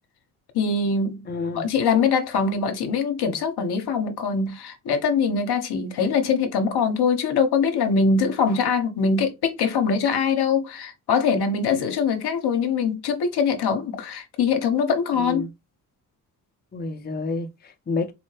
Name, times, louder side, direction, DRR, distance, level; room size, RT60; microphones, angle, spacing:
voice 1, 0.5-1.3 1.5-15.4, left 5 dB, 60° left, 1.0 m, -23 dB
voice 2, 1.3-1.7 11.7-11.9 15.2-15.5 16.7-18.1, left 3 dB, 20° left, 0.7 m, -30 dB
4.3 x 2.1 x 3.2 m
hypercardioid pair, 50°, 45 cm